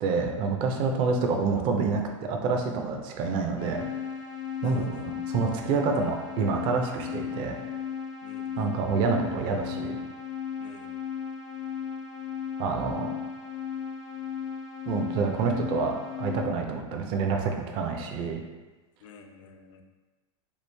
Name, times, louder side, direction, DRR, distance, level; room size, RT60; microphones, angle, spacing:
voice 1, 0.0-3.9 4.6-7.6 8.6-10.0 12.6-13.1 14.9-18.4, right 4 dB, 30° right, 3 dB, 0.4 m, -27 dB
sound 1, 3.6-16.4, left 8 dB, 20° left, 0.5 m, -36 dB
voice 2, 4.6-5.1 8.2-8.7 10.6-10.9 19.0-19.8, left 5 dB, 70° left, 5 dB, 0.4 m, -46 dB
3.1 x 2.4 x 3.2 m, 1.2 s
supercardioid pair, 150°, 16 cm